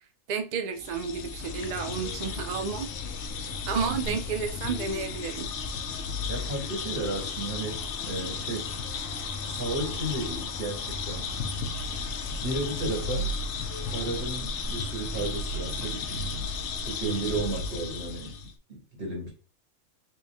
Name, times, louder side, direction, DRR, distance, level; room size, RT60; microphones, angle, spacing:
voice 1, 0.3-2.9 3.4-5.5, right 6 dB, 70° right, 0.4 m, -31 dB
sound 1, 0.8-18.5, left 4 dB, 70° left, 0.8 m, -34 dB
sound 2, 1.4-17.4, right 1 dB, ahead, 2.0 m, -46 dB
voice 2, 6.3-8.7 9.5-11.3 12.4-13.3 13.7-16.2 16.8-18.4 18.7-19.3, right 2 dB, 45° right, 1.8 m, -33 dB
3.1 x 3.0 x 3.4 m
omnidirectional pair, 1.3 m